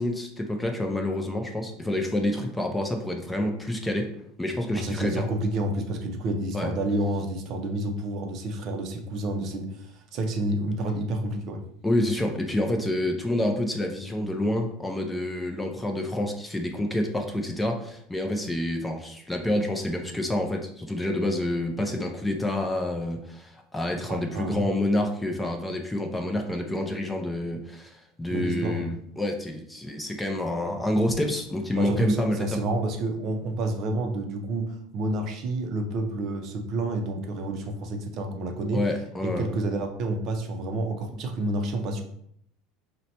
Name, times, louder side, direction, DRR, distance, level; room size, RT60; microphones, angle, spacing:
voice 1, 0.0-4.1 4.4-5.2 6.5-6.7 11.8-32.5 38.7-39.5, left 1 dB, 5° left, 2 dB, 0.4 m, -28 dB
voice 2, 4.7-11.6 24.1-24.7 28.3-28.9 31.8-38.8 39.2-42.0, right 2 dB, 45° right, 4 dB, 0.5 m, -29 dB
4.0 x 2.1 x 2.8 m, 0.70 s
supercardioid pair, 130°, 0 cm